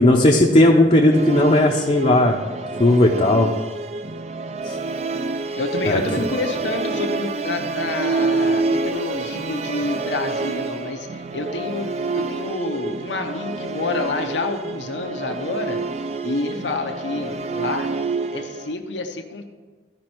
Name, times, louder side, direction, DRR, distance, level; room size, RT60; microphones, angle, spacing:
voice 1, 0.0-2.4 2.8-3.5 4.6-4.7 5.9-6.0, left 1 dB, 35° left, -1 dB, 0.6 m, -15 dB
Musical instrument, 1.1-18.7, right 3 dB, 40° right, 0.4 m, -27 dB
voice 2, 5.6-15.8 16.2-17.9 18.3-19.4, left 3 dB, 85° left, 4 dB, 0.9 m, -28 dB
13.5 x 5.3 x 4.5 m, 1.3 s
head